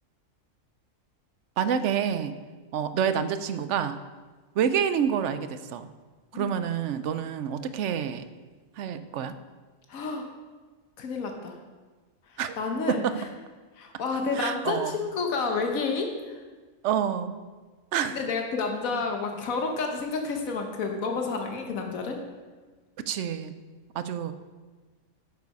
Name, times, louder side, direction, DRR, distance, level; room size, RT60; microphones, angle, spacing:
voice 1, 1.6-2.3 2.7-4.0 4.6-5.9 6.3-8.2 8.8-9.3 12.4-12.5 12.9-13.1 14.3-15.0 16.8-17.4 17.9-18.2 23.1-23.6 23.9-24.3, right 8 dB, 70° right, 11 dB, 0.9 m, -28 dB
voice 2, 9.9-10.3 11.0-11.6 12.3-13.1 13.8-16.4 18.1-22.2, left 4 dB, 90° left, 3 dB, 1.4 m, -30 dB
9.3 x 6.7 x 5.3 m, 1.4 s
omnidirectional pair, 1.4 m